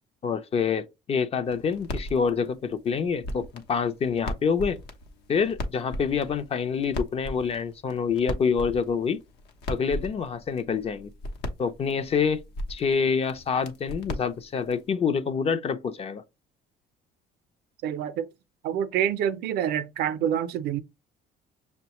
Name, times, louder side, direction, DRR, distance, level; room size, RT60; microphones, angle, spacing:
voice 1, 0.2-4.8 5.3-9.2 9.7-11.1 11.6-12.4 12.7-16.2, left 6 dB, 35° left, 0.5 m, -26 dB
sound 1, 1.4-14.9, left 1 dB, 80° left, 0.8 m, -38 dB
voice 2, 17.8-18.3 18.6-20.8, right 9 dB, 75° right, 0.5 m, -27 dB
6.1 x 2.2 x 2.9 m
cardioid pair, 110°, 17 cm